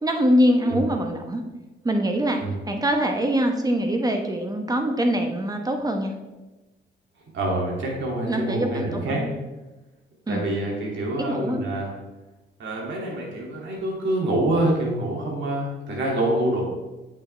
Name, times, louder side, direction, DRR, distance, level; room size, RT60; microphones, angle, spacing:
voice 1, 0.0-1.4 1.8-6.1 8.3-9.3 10.3-10.4 11.2-11.6, equal, 20° right, 4 dB, 1.1 m, -23 dB
voice 2, 7.3-9.2 10.3-11.9 12.6-16.6, right 1 dB, 70° right, -2 dB, 2.6 m, -26 dB
8.4 x 6.3 x 3.4 m, 1.1 s
cardioid pair, 90°, 20 cm